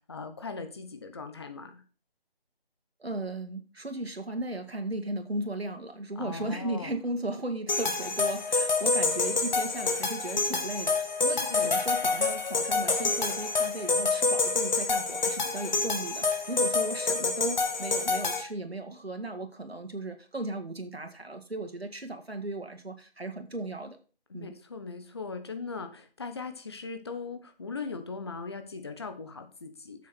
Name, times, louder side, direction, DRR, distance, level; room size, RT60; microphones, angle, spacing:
voice 1, 0.1-1.8 6.2-6.9 11.3-11.8 24.3-30.1, left 4 dB, 25° left, 7 dB, 1.0 m, -39 dB
voice 2, 3.0-24.0 24.3-24.5, right 2 dB, 85° right, 6 dB, 2.2 m, -36 dB
sound 1, 7.7-18.4, left 3 dB, 45° left, 2.1 m, -27 dB
10.0 x 7.5 x 4.3 m, 0.37 s
figure-of-eight pair, 160°, 30 cm